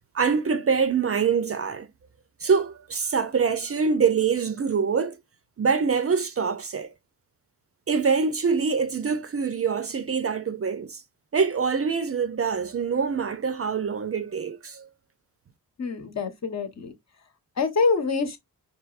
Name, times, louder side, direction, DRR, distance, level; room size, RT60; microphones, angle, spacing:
voice 1, 0.1-1.9 2.4-5.2 5.6-6.9 7.9-11.0 11.3-14.9, right 5 dB, 40° right, 0.5 m, -24 dB
voice 2, 15.8-16.9 17.6-18.4, left 4 dB, 45° left, 1.0 m, -25 dB
4.6 x 2.9 x 2.4 m
wide cardioid pair, 110°, 37 cm